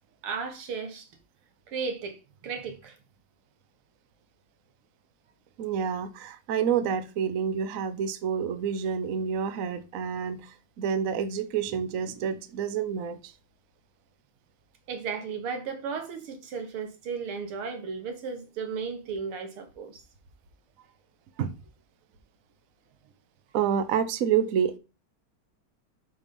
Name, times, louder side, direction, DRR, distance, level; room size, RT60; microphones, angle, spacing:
voice 1, 0.2-1.1 1.7-3.0 14.9-20.0, right 5 dB, 80° right, 2.3 m, -35 dB
voice 2, 5.6-13.3 21.4-21.5 23.5-24.8, right 7 dB, 65° right, 0.8 m, -28 dB
5.6 x 5.1 x 5.3 m
omnidirectional pair, 2.4 m